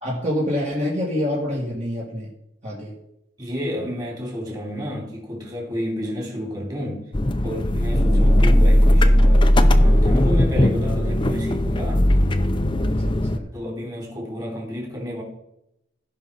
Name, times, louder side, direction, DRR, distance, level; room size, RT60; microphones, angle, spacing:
voice 1, 0.0-2.3 2.6-3.0 12.7-13.5, left 1 dB, 40° right, 2.4 m, -27 dB
voice 2, 3.4-7.1 7.4-12.1 13.5-15.2, equal, 20° right, 3.3 m, -30 dB
sound 1, 7.1-13.4, left 1 dB, 25° left, 0.6 m, -17 dB
16.0 x 5.5 x 4.1 m
head